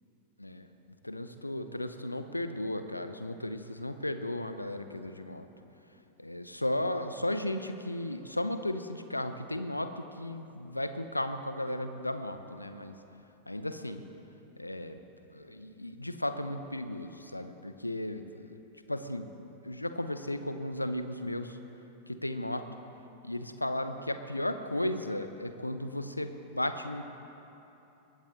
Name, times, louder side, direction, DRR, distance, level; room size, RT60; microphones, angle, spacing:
voice 1, 1.0-5.5 6.2-13.0 13.5-14.0 14.6-15.0 15.3-18.5 18.9-19.3 19.6-21.6 22.1-22.7 23.2-27.0, left 1 dB, 85° left, 9 dB, 0.8 m, -35 dB
21.0 x 16.0 x 3.9 m, 3.0 s
figure-of-eight pair, 90°, 0 cm